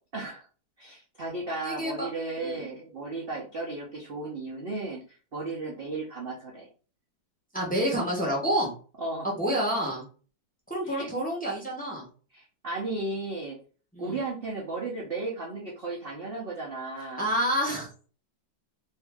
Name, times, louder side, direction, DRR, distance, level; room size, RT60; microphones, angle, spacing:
voice 1, 0.1-0.5 0.8-6.7 9.0-9.3 10.8-11.1 12.3-13.6 14.0-17.3, right 3 dB, 85° right, -3 dB, 0.5 m, -35 dB
voice 2, 1.6-2.1 2.4-2.7 7.5-8.7 9.2-10.0 10.7-12.0 13.9-14.2 17.2-17.9, equal, 10° left, -4 dB, 0.5 m, -28 dB
2.8 x 2.7 x 3.4 m, 0.39 s
omnidirectional pair, 2.1 m